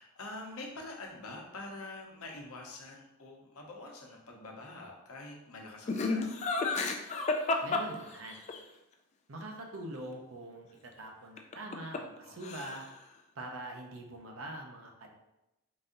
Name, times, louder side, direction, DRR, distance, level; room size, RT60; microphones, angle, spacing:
voice 1, 0.0-6.4 12.2-12.6, left 2 dB, 85° left, 0 dB, 0.9 m, -46 dB
Laughter, 5.9-8.6 11.4-12.2 12.4-13.0, left 3 dB, 30° left, 0.3 m, -31 dB
voice 2, 7.6-8.4 9.3-12.9 13.4-15.1, right 1 dB, 65° right, 2 dB, 0.7 m, -44 dB
3.9 x 2.6 x 3.8 m, 0.93 s
head